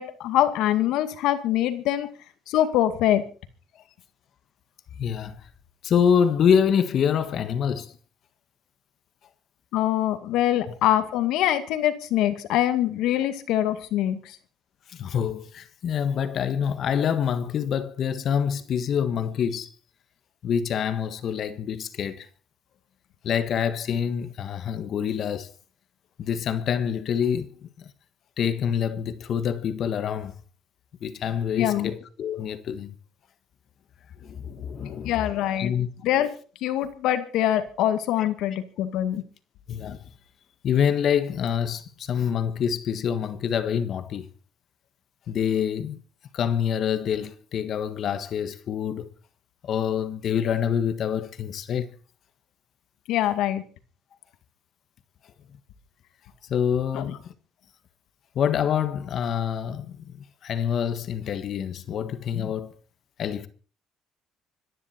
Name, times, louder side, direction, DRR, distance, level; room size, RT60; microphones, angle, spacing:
voice 1, 0.0-2.1 2.5-3.2 9.7-14.4 31.6-31.9 35.1-35.7 36.0-36.3 36.6-39.2 53.1-53.6 56.9-57.1, left 12 dB, 80° left, 2.2 m, -24 dB
voice 2, 5.0-5.5 5.8-8.0 14.9-19.7 20.4-22.3 23.2-25.5 26.2-27.5 27.8-27.9 28.4-30.3 31.0-32.9 34.2-35.1 35.6-35.9 38.2-38.3 39.7-40.1 40.6-44.3 45.3-46.0 46.3-49.1 49.6-51.9 56.5-57.3 58.3-62.7 63.2-63.5, left 8 dB, 50° left, 1.5 m, -26 dB
26.0 x 11.0 x 4.4 m
cardioid pair, 145°, 0 cm